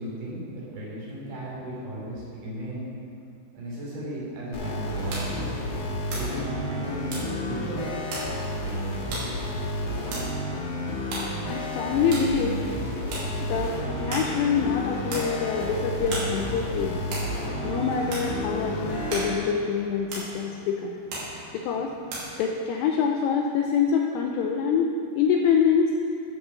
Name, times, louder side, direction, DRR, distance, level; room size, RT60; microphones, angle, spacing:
voice 1, 0.0-2.8 3.5-5.5 6.1-7.8, equal, 55° right, -7 dB, 4.6 m, -35 dB
sound 1, 4.5-19.3, equal, 70° left, 1.5 m, -31 dB
sound 2, 4.6-22.2, right 1 dB, 75° right, 4.8 m, -39 dB
voice 2, 11.5-12.7 13.4-17.0 17.6-21.0 21.5-22.0 22.4-25.9, left 6 dB, 90° left, 2 dB, 2.4 m, -25 dB
12.0 x 5.7 x 6.8 m, 2.5 s
omnidirectional pair, 5.4 m